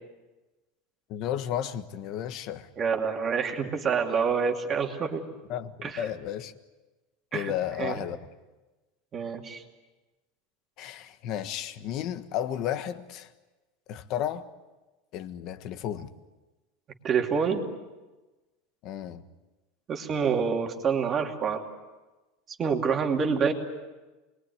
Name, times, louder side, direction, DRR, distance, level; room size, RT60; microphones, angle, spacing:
voice 1, 1.1-2.7 5.5-6.5 7.3-8.2 10.8-13.3 13.9-14.5 15.1-16.1 18.8-19.2, left 10 dB, 40° left, 10 dB, 1.4 m, -33 dB
voice 2, 2.8-5.2 5.8-6.0 7.3-7.5 7.8-8.0 9.1-9.6 17.0-17.6 19.9-21.6 22.6-23.5, right 6 dB, 20° right, 2 dB, 2.7 m, -27 dB
28.5 x 22.0 x 9.5 m, 1.2 s
supercardioid pair, 165°, 0 cm